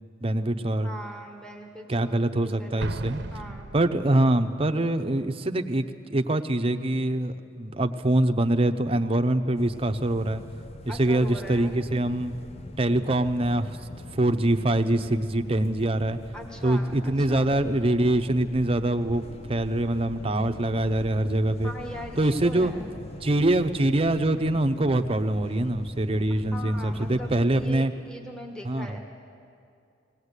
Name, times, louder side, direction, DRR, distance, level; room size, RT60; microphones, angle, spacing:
voice 1, 0.2-0.9 1.9-3.2 3.7-5.9 6.1-10.4 10.9-12.3 12.8-13.8 14.1-16.2 16.6-21.7 22.2-22.7 23.2-27.9 28.6-28.9, right 1 dB, 30° right, 7 dB, 0.8 m, -24 dB
voice 2, 0.8-3.7 10.9-11.8 16.3-17.5 21.6-22.9 26.3-29.0, equal, 5° left, 1 dB, 1.4 m, -40 dB
Explosion, 2.8-4.5, right 2 dB, 65° right, 0.8 m, -36 dB
sound 1, 9.5-27.9, left 2 dB, 35° left, 0.7 m, -42 dB
20.0 x 18.0 x 8.2 m, 2.4 s
head